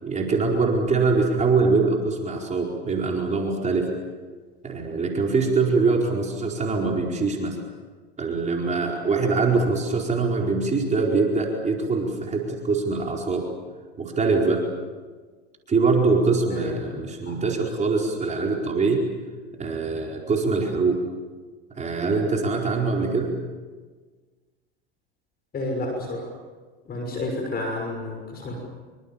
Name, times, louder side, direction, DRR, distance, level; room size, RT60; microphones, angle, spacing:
voice 1, 0.0-3.9 4.6-7.6 8.2-13.5 14.0-14.6 15.7-19.0 19.6-21.0 21.7-23.3, right 4 dB, 20° right, -1 dB, 4.7 m, -23 dB
voice 2, 16.5-17.3 25.5-26.3 26.9-28.6, left 2 dB, 30° left, 2 dB, 6.2 m, -31 dB
26.5 x 25.0 x 7.3 m, 1.4 s
hypercardioid pair, 100°, 31 cm